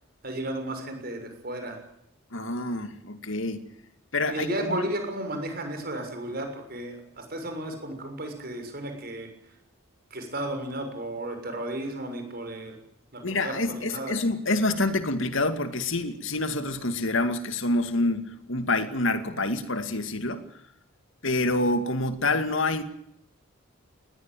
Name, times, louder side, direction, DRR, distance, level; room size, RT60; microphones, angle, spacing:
voice 1, 0.2-1.8 4.3-9.3 10.1-12.8 13.1-14.1, right 1 dB, 45° right, 6.8 m, -34 dB
voice 2, 2.3-3.7 4.1-4.9 13.2-20.4 21.2-22.8, left 2 dB, 65° left, 2.3 m, -27 dB
21.5 x 18.0 x 9.2 m
head